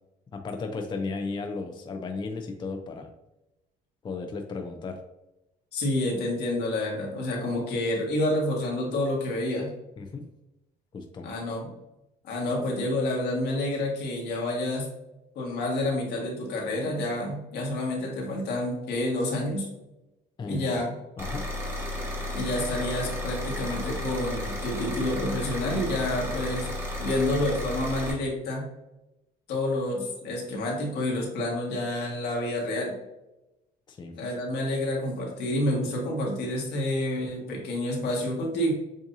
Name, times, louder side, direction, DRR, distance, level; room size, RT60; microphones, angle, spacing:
voice 1, 0.3-3.1 4.0-5.0 10.0-10.3 10.9-11.3 20.4-20.8 21.2-21.5 33.9-34.2, left 4 dB, 25° left, 5 dB, 0.5 m, -35 dB
voice 2, 5.7-9.7 11.2-11.7 12.2-14.9 15.4-19.7 20.5-20.9 22.3-26.7 27.0-28.6 29.5-32.9 34.2-38.7, left 1 dB, 75° left, -1 dB, 1.7 m, -28 dB
sound 1, 21.2-28.1, left 1 dB, 15° right, 1.5 m, -33 dB
7.2 x 2.6 x 2.7 m, 0.94 s
cardioid pair, 110°, 17 cm